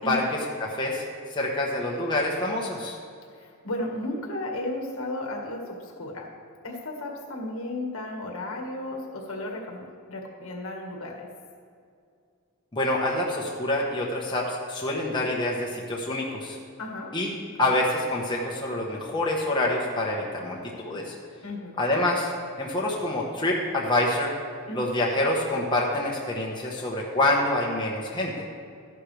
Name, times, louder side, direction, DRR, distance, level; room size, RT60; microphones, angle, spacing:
voice 1, 0.1-0.4 0.8-1.0 1.3-3.0 12.7-16.6 17.1-21.1 21.8-22.3 22.6-24.3 24.7-28.3, left 1 dB, 20° left, -3 dB, 1.1 m, -26 dB
voice 2, 3.3-6.3 6.6-11.3 16.8-17.2 17.6-17.8 21.4-21.8 24.7-24.9, left 1 dB, 65° left, 0 dB, 1.8 m, -34 dB
13.5 x 11.0 x 3.4 m, 2.3 s
head